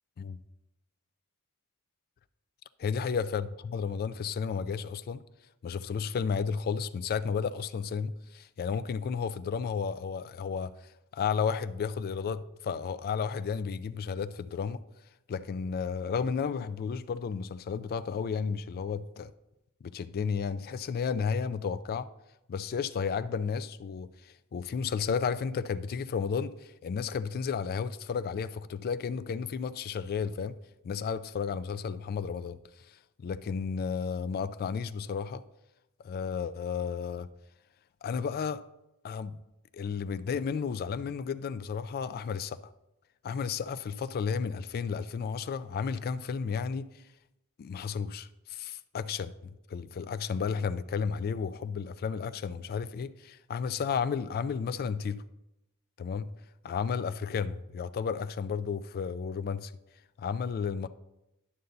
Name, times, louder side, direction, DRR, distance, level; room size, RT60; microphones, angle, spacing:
voice 1, 2.8-5.2 5.6-10.7 11.1-14.8 15.3-19.3 19.8-22.1 22.5-30.6 30.8-32.6 33.2-35.4 36.0-37.3 38.0-38.6 39.0-39.4 39.7-42.6 43.2-46.9 47.6-49.3 49.7-55.2 56.0-56.3 56.6-59.7 60.2-60.9, left 6 dB, 45° left, 0.3 m, -32 dB
11.0 x 6.7 x 2.6 m
head